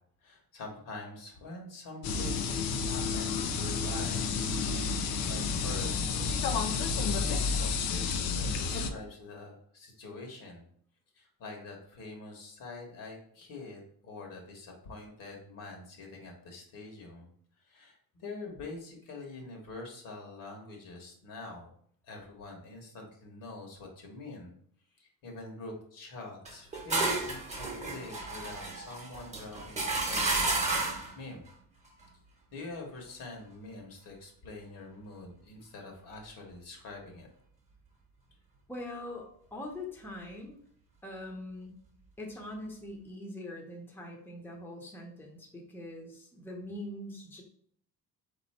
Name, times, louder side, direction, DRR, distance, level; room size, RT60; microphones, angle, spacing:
voice 1, 0.2-4.2 4.5-4.8 5.2-10.6 11.1-17.3 17.6-21.7 22.0-24.5 25.0-30.5 31.1-31.5 32.5-37.3, left 3 dB, 70° left, 1 dB, 1.5 m, -45 dB
sound 1, 2.0-8.9, left 5 dB, 85° left, 0.7 m, -30 dB
sound 2, 26.4-31.1, right 2 dB, 20° right, 1.0 m, -32 dB
voice 2, 38.7-40.6 41.0-41.7 42.2-47.4, left 1 dB, 5° left, -1 dB, 0.8 m, -42 dB
4.0 x 3.0 x 4.3 m, 0.63 s
cardioid pair, 130°, 35 cm